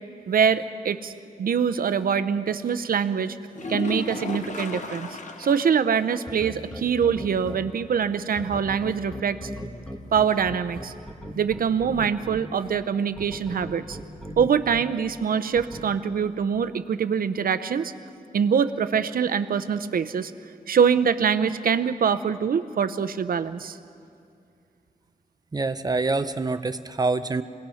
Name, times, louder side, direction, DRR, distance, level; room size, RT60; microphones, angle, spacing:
voice 1, 0.3-1.1 1.4-3.4 3.7-5.1 5.4-9.5 10.1-10.9 11.3-14.0 14.4-17.9 18.3-20.3 20.7-23.8, right 7 dB, 75° right, 12 dB, 0.7 m, -24 dB
sound 1, 3.5-5.8 6.1-6.2 6.7-6.8 10.5-10.6, left 4 dB, 55° left, 1.2 m, -33 dB
sound 2, 6.3-7.6 8.4-12.4 13.2-14.8 15.6-15.8, equal, 5° left, 1.4 m, -36 dB
voice 2, 25.5-27.4, right 3 dB, 25° right, 10 dB, 0.6 m, -26 dB
26.0 x 18.5 x 5.7 m, 2.4 s
wide cardioid pair, 155°, 15 cm